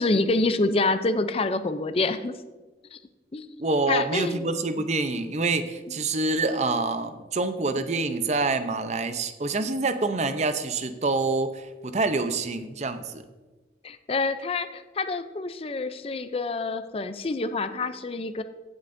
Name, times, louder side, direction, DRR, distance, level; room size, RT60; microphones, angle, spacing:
voice 1, 0.0-2.3 2.9-3.0 3.3-3.5 3.9-4.5 5.9-6.0 13.8-18.4, left 3 dB, 30° left, 10 dB, 0.4 m, -27 dB
voice 2, 3.6-13.2, right 3 dB, 40° right, 9 dB, 0.6 m, -26 dB
16.0 x 7.6 x 2.6 m, 1.2 s
head